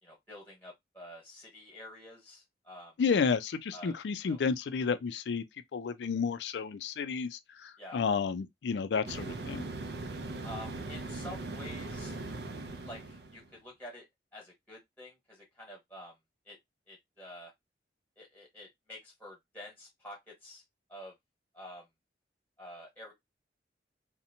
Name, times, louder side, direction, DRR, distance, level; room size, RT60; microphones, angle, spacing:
voice 1, 0.0-2.9 3.7-3.9 4.2-4.4 7.8-8.0 10.4-12.3 12.8-14.1 14.3-16.1 16.4-16.6 16.9-17.5 18.2-20.6 20.9-21.1 21.5-21.9 22.6-23.1, left 1 dB, 10° left, 1.2 m, -48 dB
voice 2, 3.0-5.4 5.7-9.7, left 5 dB, 70° left, 0.4 m, -31 dB
sound 1, 9.0-13.5, right 2 dB, 60° right, 0.4 m, -40 dB
2.8 x 2.1 x 2.6 m
head